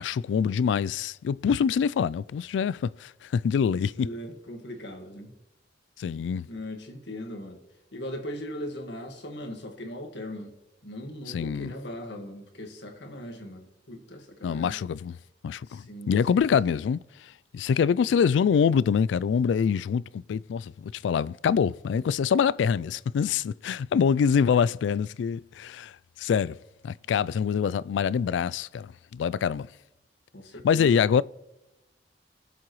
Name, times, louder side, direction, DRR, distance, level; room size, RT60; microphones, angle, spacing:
voice 1, 0.0-4.1 6.0-6.5 11.3-11.7 14.4-15.2 15.4-17.0 17.5-25.9 26.2-26.6 26.8-29.7 30.6-31.2, left 7 dB, 90° left, 0.3 m, -25 dB
voice 2, 3.7-5.3 6.5-7.6 7.9-10.5 10.8-14.8 15.7-16.5 30.3-31.0, left 1 dB, 75° left, 1.7 m, -39 dB
22.0 x 7.5 x 3.1 m
head